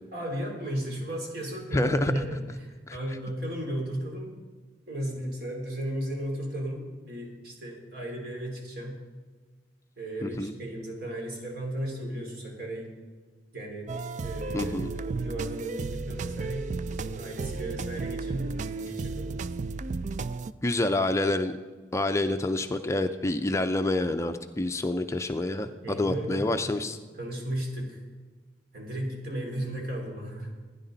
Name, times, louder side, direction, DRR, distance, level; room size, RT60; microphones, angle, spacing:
voice 1, 0.1-4.3 4.9-9.0 10.0-12.9 13.5-13.9 14.2-19.3 25.8-26.8 27.1-28.0 28.7-30.5, right 1 dB, 60° right, 0 dB, 3.5 m, -35 dB
voice 2, 1.7-2.3 2.9-3.0 10.2-10.5 14.5-14.9 20.6-21.5 21.9-27.0, left 2 dB, 15° left, 7 dB, 0.5 m, -27 dB
sound 1, 13.9-20.5, right 3 dB, 45° right, 0.4 m, -33 dB
16.5 x 10.0 x 4.0 m, 1.4 s
head